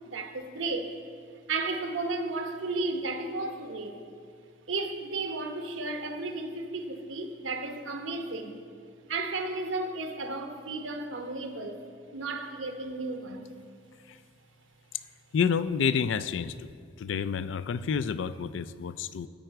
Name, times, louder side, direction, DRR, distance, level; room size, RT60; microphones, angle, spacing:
voice 1, 0.0-0.9 1.5-4.0 4.7-8.6 9.1-11.8 12.1-13.5, right 3 dB, 80° right, 0.9 m, -33 dB
voice 2, 15.3-16.7 17.0-19.3, left 6 dB, 70° left, 0.4 m, -29 dB
12.5 x 7.7 x 4.6 m
head